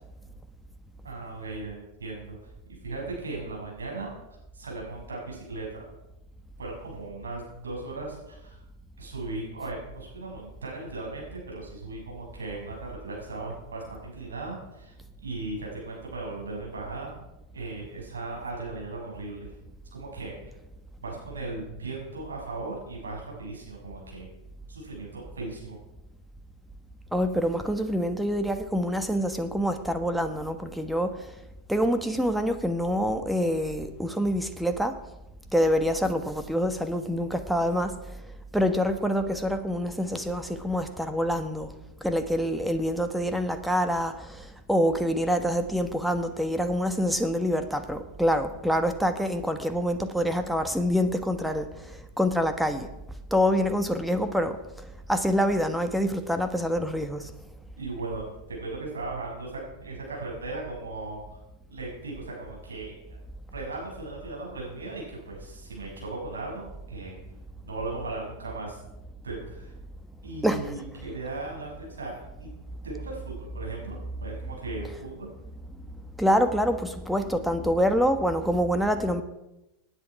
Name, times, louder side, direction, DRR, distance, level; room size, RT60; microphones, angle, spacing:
voice 1, 1.0-2.4 2.7-4.1 4.5-5.8 6.6-8.6 9.0-14.9 15.2-17.1 17.5-19.5 19.9-20.4 21.0-24.3 24.7-25.8 57.8-61.4 61.7-63.2 63.5-67.2 67.6-68.8 69.2-69.7 70.2-72.5 72.8-75.3, right 3 dB, 85° right, -2 dB, 6.2 m, -37 dB
voice 2, 27.1-31.1 31.7-34.9 35.5-37.9 38.5-41.7 42.0-44.1 44.7-51.6 52.2-52.9 53.3-54.5 55.1-57.2 70.4-70.6 76.2-76.8 77.1-79.2, equal, ahead, 8 dB, 1.3 m, -26 dB
18.5 x 9.9 x 4.8 m, 0.94 s
hypercardioid pair, 90°, 0 cm